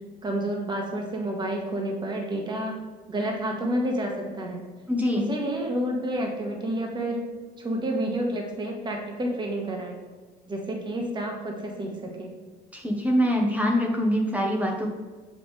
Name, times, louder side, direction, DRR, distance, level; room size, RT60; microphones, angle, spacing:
voice 1, 0.2-2.7 3.1-4.6 5.2-7.2 7.6-10.0 10.5-12.3, right 1 dB, 25° right, 0 dB, 1.4 m, -29 dB
voice 2, 4.9-5.2 12.7-14.9, equal, 10° right, 0 dB, 0.9 m, -24 dB
6.8 x 5.5 x 3.2 m, 1.4 s
cardioid pair, 110°, 17 cm